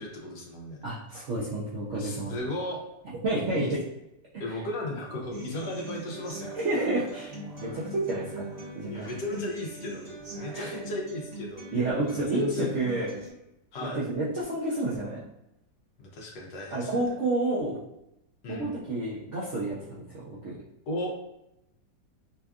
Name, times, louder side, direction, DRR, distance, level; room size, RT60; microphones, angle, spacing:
voice 1, 0.0-0.8 2.0-2.8 3.5-3.7 4.4-6.5 8.9-10.1 10.4-12.7 13.7-14.0 16.0-17.0 18.4-18.7 20.9-21.2, left 2 dB, 70° left, -1 dB, 1.3 m, -35 dB
voice 2, 0.8-2.3 3.2-3.8 6.5-8.5 8.7-9.1 10.5-10.7 11.7-13.2 14.0-15.2 16.7-17.8 18.5-20.6, right 2 dB, 65° right, -7 dB, 0.7 m, -30 dB
Human voice / Acoustic guitar, 5.3-13.3, right 1 dB, 90° right, 0.3 m, -41 dB
5.3 x 2.2 x 2.4 m, 0.86 s
omnidirectional pair, 2.0 m